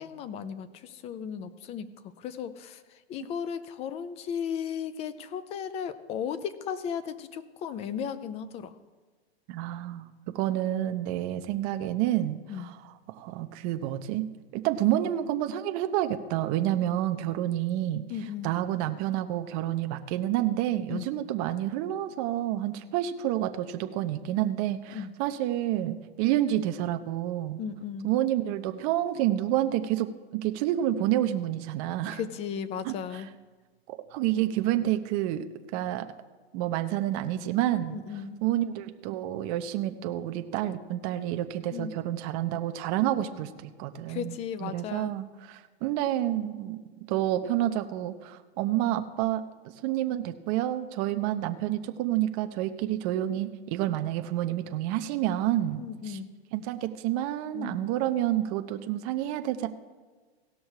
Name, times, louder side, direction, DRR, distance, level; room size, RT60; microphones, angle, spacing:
voice 1, 0.0-8.8 12.5-12.7 18.1-18.5 20.9-21.1 24.9-25.1 27.6-28.1 32.1-33.3 37.9-38.4 41.7-42.0 43.2-43.5 44.1-45.1 55.8-56.3 57.5-57.9, left 7 dB, 20° left, 14 dB, 0.5 m, -36 dB
voice 2, 9.5-12.7 13.1-14.3 14.5-18.0 18.4-27.6 28.0-32.2 32.8-33.2 33.9-35.5 35.7-36.1 36.5-38.0 38.4-46.8 47.1-49.4 49.8-56.2 56.5-59.7, right 13 dB, 35° right, 8 dB, 0.7 m, -29 dB
17.0 x 6.2 x 4.8 m, 1.4 s
hypercardioid pair, 130°, 32 cm